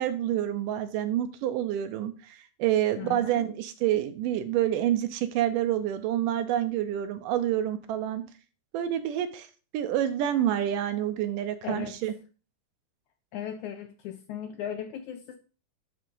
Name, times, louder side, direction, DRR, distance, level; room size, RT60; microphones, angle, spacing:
voice 1, 0.0-8.2 8.7-9.5 9.7-12.1, right 11 dB, 80° right, 10 dB, 2.1 m, -28 dB
voice 2, 3.0-3.5 11.6-12.0 13.3-15.4, left 9 dB, 80° left, 6 dB, 1.8 m, -37 dB
10.5 x 3.7 x 5.3 m, 0.36 s
omnidirectional pair, 4.0 m